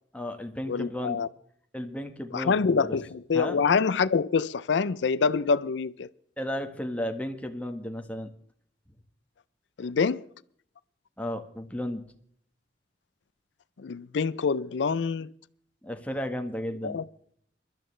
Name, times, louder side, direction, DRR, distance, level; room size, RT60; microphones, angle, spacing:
voice 1, 0.1-1.2 1.7-3.0 3.3-3.6 6.4-8.3 11.2-12.0 15.8-17.0, left 1 dB, 10° left, 1.3 m, -34 dB
voice 2, 0.7-1.3 2.3-6.1 9.8-10.3 13.8-15.3 16.8-17.0, left 5 dB, 85° left, 0.5 m, -26 dB
23.0 x 12.5 x 3.2 m
head